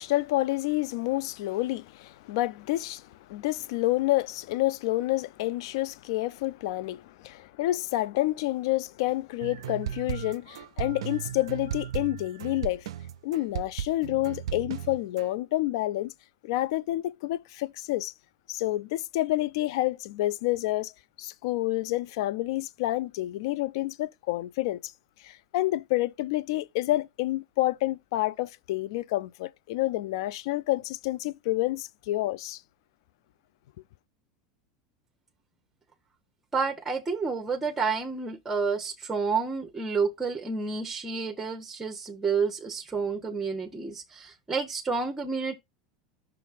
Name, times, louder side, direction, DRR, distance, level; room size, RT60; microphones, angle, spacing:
voice 1, 0.0-12.9 13.2-16.1 16.4-18.1 18.5-20.9 21.2-24.9 25.2-32.6, left 17 dB, 60° left, 0.4 m, -29 dB
sound 1, 9.4-15.3, right 10 dB, 70° right, 0.4 m, -35 dB
voice 2, 36.5-45.5, right 5 dB, 15° right, 0.9 m, -30 dB
5.9 x 3.3 x 4.8 m
figure-of-eight pair, 85°, 3 cm